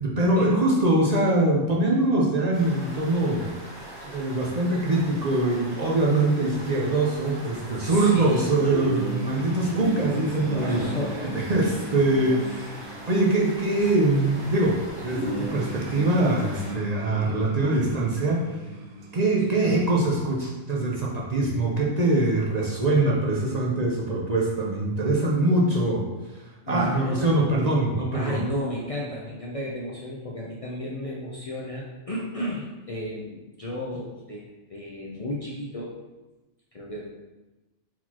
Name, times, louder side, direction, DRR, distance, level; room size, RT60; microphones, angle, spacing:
voice 1, 0.0-3.5 4.0-10.8 11.3-18.5 19.1-28.4, right 2 dB, 45° right, -3 dB, 0.6 m, -23 dB
sound 1, 2.5-16.7, right 1 dB, 20° right, 1.4 m, -42 dB
voice 2, 7.8-8.5 10.5-11.4 12.2-12.5 13.8-13.9 15.4-15.6 17.7-17.9 19.4-19.6 26.6-27.3 28.1-36.0 36.7-37.1, left 1 dB, 60° left, -4 dB, 0.3 m, -33 dB
sound 2, 8.6-19.9, right 1 dB, 65° right, 0.9 m, -37 dB
4.4 x 4.0 x 2.9 m, 1.1 s
omnidirectional pair, 1.4 m